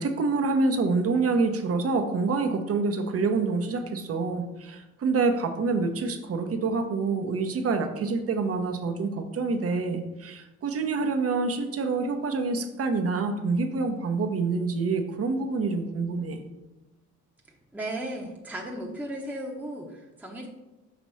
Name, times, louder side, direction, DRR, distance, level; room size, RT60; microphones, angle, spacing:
voice 1, 0.0-16.4, right 4 dB, 50° right, 6 dB, 0.9 m, -27 dB
voice 2, 17.4-20.5, right 1 dB, 5° right, -1 dB, 0.9 m, -36 dB
6.0 x 3.0 x 5.5 m, 1.1 s
cardioid pair, 90°, 30 cm